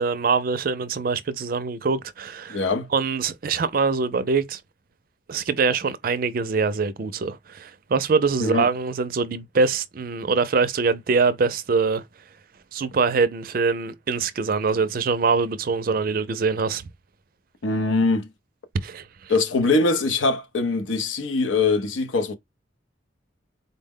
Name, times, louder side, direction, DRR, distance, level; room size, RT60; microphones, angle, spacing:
voice 1, 0.0-2.6 2.9-4.6 5.3-12.0 12.7-16.8 18.8-19.3, right 4 dB, 50° right, 0.4 m, -24 dB
voice 2, 2.5-2.9 8.4-8.7 17.6-18.3 19.3-22.3, left 3 dB, 85° left, 0.7 m, -22 dB
4.0 x 2.1 x 3.6 m
head